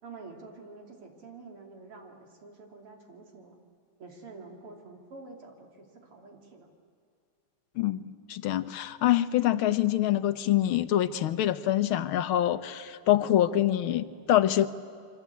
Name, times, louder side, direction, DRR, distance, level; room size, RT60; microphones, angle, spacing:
voice 1, 0.0-3.6 4.0-6.7, right 3 dB, 80° right, 2 dB, 3.9 m, -48 dB
voice 2, 7.8-14.7, left 12 dB, 75° left, 13 dB, 1.6 m, -25 dB
27.5 x 24.0 x 8.4 m, 2.4 s
omnidirectional pair, 2.4 m